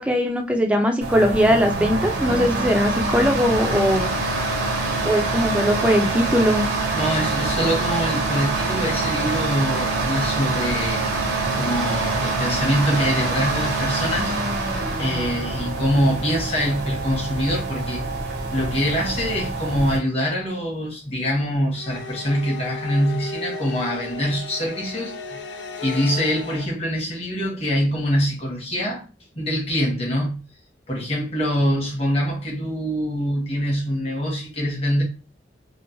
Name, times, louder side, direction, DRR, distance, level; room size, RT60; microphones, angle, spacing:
voice 1, 0.0-4.1 5.0-6.7, equal, 5° right, 0.4 m, -20 dB
sound 1, 1.0-20.0, right 3 dB, 60° right, 0.7 m, -25 dB
voice 2, 6.9-11.0 11.5-14.7 15.0-18.0 18.5-25.4 25.8-29.0 29.3-30.4 30.9-35.0, equal, 35° left, 1.0 m, -24 dB
sound 2, 21.7-26.7, left 2 dB, 65° left, 0.4 m, -35 dB
3.0 x 2.0 x 2.6 m
head